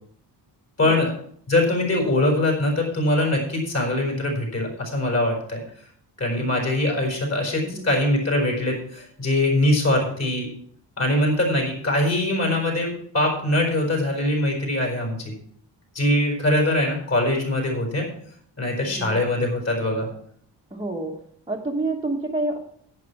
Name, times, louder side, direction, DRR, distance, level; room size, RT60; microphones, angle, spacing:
voice 1, 0.8-1.1 1.5-5.6 6.2-10.5 11.0-15.3 15.9-18.1 18.6-20.1, left 1 dB, 35° left, 0 dB, 4.7 m, -22 dB
voice 2, 7.6-8.0 18.8-19.2 20.7-21.1 21.5-22.6, right 2 dB, 10° right, -2 dB, 1.3 m, -28 dB
11.0 x 9.9 x 4.7 m, 0.64 s
wide cardioid pair, 160°, 42 cm